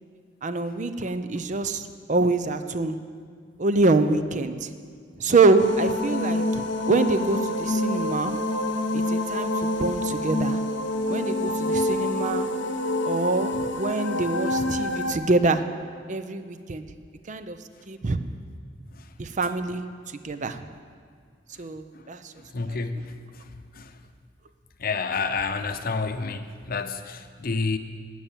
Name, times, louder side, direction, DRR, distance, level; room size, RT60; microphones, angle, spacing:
voice 1, 0.4-3.0 3.6-4.7 5.2-8.3 8.9-10.6 11.1-12.5 13.0-15.6 16.1-16.8 17.3-17.6 17.9-18.2 19.2-19.8 20.2-20.7 21.6-22.3 22.7-22.8, right 3 dB, 40° right, 10 dB, 0.6 m, -25 dB
sound 1, 5.6-15.1, left 1 dB, 80° left, 0.9 m, -27 dB
voice 2, 22.4-23.9 24.8-27.8, left 4 dB, 55° left, 9 dB, 0.7 m, -30 dB
11.0 x 9.0 x 7.4 m, 2.1 s
head